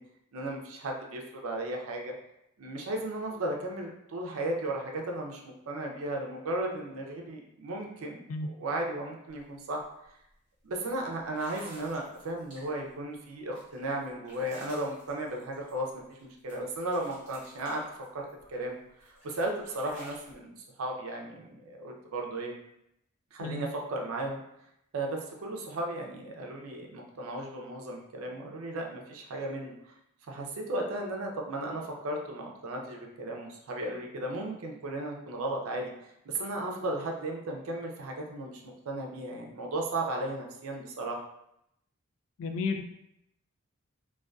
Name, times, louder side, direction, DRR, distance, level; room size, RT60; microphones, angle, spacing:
voice 1, 0.3-2.1 2.6-8.2 8.5-9.8 10.6-17.8 18.1-18.2 18.5-18.8 19.0-22.5 23.3-24.4 24.9-29.7 30.3-35.9 36.3-38.6 38.9-41.2, right 1 dB, 80° right, 0 dB, 0.5 m, -35 dB
sound 1, 9.3-9.4 9.8-10.1 10.7-10.8 11.3-12.9 13.5-16.2 16.5-18.6 19.0-20.3, equal, 35° right, 0.9 m, -53 dB
voice 2, 42.4-42.8, left 3 dB, 70° left, 5 dB, 0.3 m, -32 dB
2.5 x 2.3 x 2.2 m, 0.80 s
head